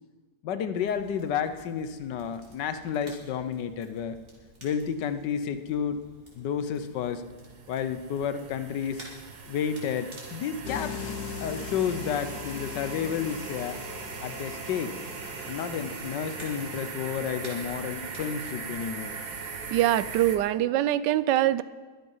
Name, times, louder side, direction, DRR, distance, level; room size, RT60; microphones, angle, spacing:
voice 1, 0.4-4.2 4.6-6.0 6.3-7.2 7.7-9.1 9.5-11.1 11.4-13.8 14.2-14.9 15.5-19.2, left 7 dB, 80° left, 11 dB, 1.5 m, -31 dB
Crackle, 0.7-18.9, right 1 dB, 30° right, 3.5 m, -53 dB
sound 1, 6.5-20.4, right 5 dB, 70° right, 1.8 m, -40 dB
sound 2, 10.6-16.9, left 8 dB, 65° left, 1.3 m, -41 dB
voice 2, 19.7-21.6, right 13 dB, 85° right, 16 dB, 1.2 m, -23 dB
22.0 x 8.1 x 5.5 m, 1.4 s
omnidirectional pair, 1.9 m